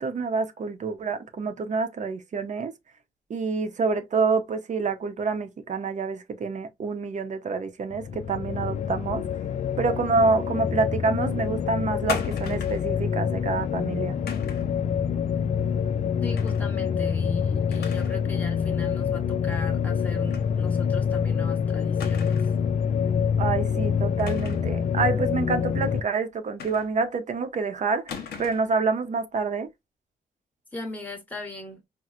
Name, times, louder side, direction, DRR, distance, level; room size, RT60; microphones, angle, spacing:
voice 1, 0.0-2.7 3.3-9.2 9.8-14.2 23.4-29.7, right 4 dB, 50° right, 0.6 m, -27 dB
sound 1, 7.9-26.0, left 7 dB, 45° left, 0.4 m, -26 dB
sound 2, 12.1-12.9 14.3-14.7 16.4-16.7 17.1-17.2 17.7-18.2 18.6-18.7 20.3-20.5 20.8-20.9 22.0-22.6 24.2-24.7 26.6-27.2 28.1-28.7, left 6 dB, 80° left, 0.8 m, -37 dB
voice 2, 16.2-22.4 30.7-31.8, left 1 dB, 10° left, 1.0 m, -39 dB
4.2 x 2.0 x 2.4 m
cardioid pair, 110°, 16 cm